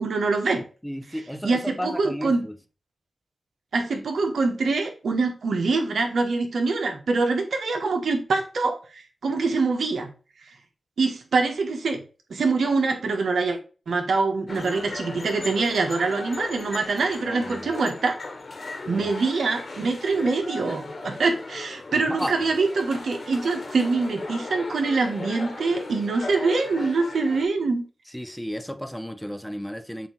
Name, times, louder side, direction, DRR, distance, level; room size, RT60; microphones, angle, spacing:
voice 1, 0.0-0.6 1.4-2.4 3.7-10.1 11.0-12.0 12.3-13.6 13.9-18.2 18.9-27.8, right 3 dB, 80° right, 1.3 m, -24 dB
voice 2, 0.6-2.6 17.2-17.7 18.9-19.1 21.9-22.5 28.1-30.1, equal, 5° left, 0.7 m, -34 dB
sound 1, 14.5-27.4, left 3 dB, 55° left, 1.6 m, -37 dB
7.4 x 2.9 x 4.5 m
cardioid pair, 50°, 0 cm